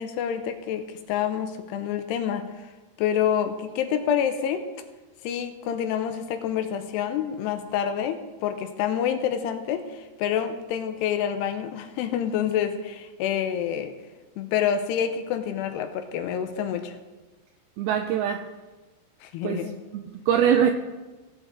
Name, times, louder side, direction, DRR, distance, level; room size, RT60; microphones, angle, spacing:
voice 1, 0.0-2.7 3.0-4.7 5.2-13.9 14.4-17.0 19.2-19.8, left 9 dB, 85° left, 8 dB, 2.7 m, -27 dB
voice 2, 17.8-18.5 19.4-19.7 20.1-20.7, right 8 dB, 85° right, 6 dB, 2.2 m, -22 dB
17.5 x 7.9 x 3.7 m, 1.2 s
omnidirectional pair, 5.0 m